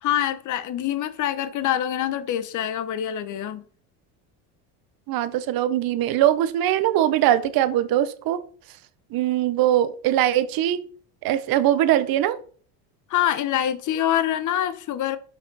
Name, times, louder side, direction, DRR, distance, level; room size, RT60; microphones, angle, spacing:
voice 1, 0.0-3.6 13.1-15.2, left 11 dB, 45° left, 0.8 m, -25 dB
voice 2, 5.1-8.4 9.1-10.8 11.2-12.4, right 12 dB, 55° right, 0.8 m, -21 dB
5.8 x 5.5 x 4.1 m
supercardioid pair, 105°, 44 cm